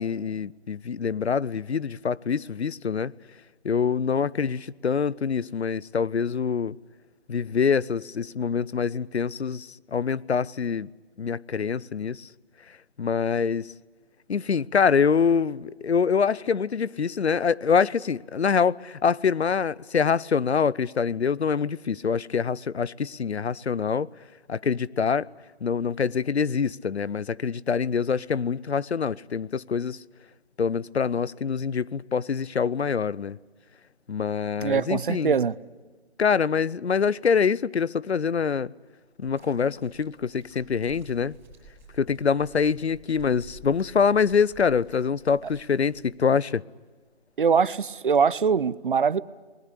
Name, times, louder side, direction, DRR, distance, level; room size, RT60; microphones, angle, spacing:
voice 1, 0.0-3.1 3.6-6.8 7.3-10.9 11.2-12.3 13.0-13.7 14.3-24.1 24.5-25.3 25.6-30.0 30.6-33.4 34.1-35.3 36.2-38.7 39.2-41.3 42.0-46.6, left 6 dB, 80° left, 0.7 m, -25 dB
voice 2, 34.6-35.5 47.4-49.2, right 6 dB, 50° right, 0.8 m, -22 dB
sound 1, 39.2-46.5 47.3-47.4, right 2 dB, 5° right, 5.1 m, -51 dB
22.0 x 20.0 x 9.9 m
figure-of-eight pair, 155°, 32 cm